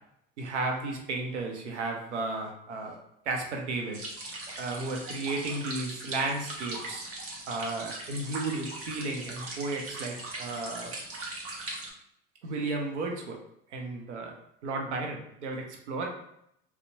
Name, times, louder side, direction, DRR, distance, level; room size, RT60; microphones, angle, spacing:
voice 1, 0.4-3.0 3.3-4.0 4.5-7.1 7.5-10.9 12.4-13.4 13.7-14.3 14.6-16.1, right 3 dB, 90° right, 1 dB, 0.6 m, -33 dB
sound 1, 3.9-11.9, right 2 dB, 40° right, 0.9 m, -40 dB
2.7 x 2.1 x 2.6 m, 0.74 s
hypercardioid pair, 85°, 34 cm